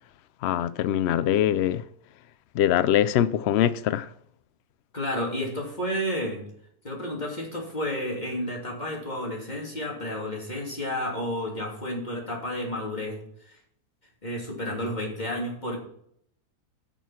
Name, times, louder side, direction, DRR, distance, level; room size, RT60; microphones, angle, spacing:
voice 1, 0.4-1.8 2.5-4.1, left 10 dB, 85° left, 0.5 m, -23 dB
voice 2, 4.9-6.4 6.8-13.2 13.5-13.6 14.2-15.8, left 1 dB, 25° left, 3.2 m, -31 dB
11.0 x 6.2 x 5.8 m
omnidirectional pair, 1.7 m